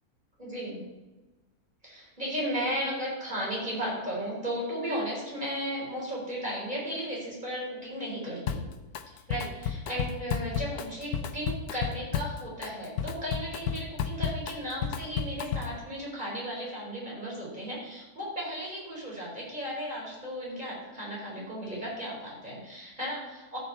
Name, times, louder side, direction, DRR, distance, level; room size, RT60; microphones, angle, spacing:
voice 1, 0.4-0.8 1.8-8.6 9.1-23.6, equal, 30° right, -5 dB, 4.6 m, -35 dB
Drum kit, 8.5-9.0 9.3-15.8, left 7 dB, 90° left, 1.2 m, -32 dB
13.5 x 7.4 x 4.2 m, 1.2 s
omnidirectional pair, 1.6 m